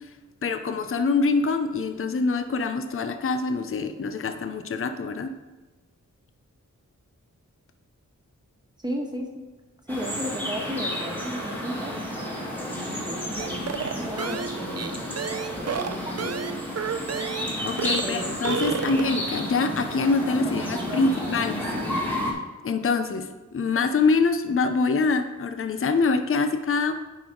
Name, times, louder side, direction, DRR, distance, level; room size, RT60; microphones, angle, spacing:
voice 1, 0.4-5.3 17.6-21.6 22.6-26.9, left 4 dB, 45° left, 8 dB, 0.6 m, -25 dB
voice 2, 8.8-9.5 9.9-11.9 12.6-15.1 15.6-16.4 18.0-18.3 18.6-19.0 20.4-21.0, equal, 15° right, 1 dB, 1.4 m, -35 dB
sound 1, 9.9-22.3, left 1 dB, 5° left, 1.9 m, -31 dB
sound 2, 13.4-17.5 17.8-18.1 18.3-19.2, right 6 dB, 55° right, 0.6 m, -31 dB
9.3 x 5.3 x 3.9 m, 1.2 s
wide cardioid pair, 75°, 31 cm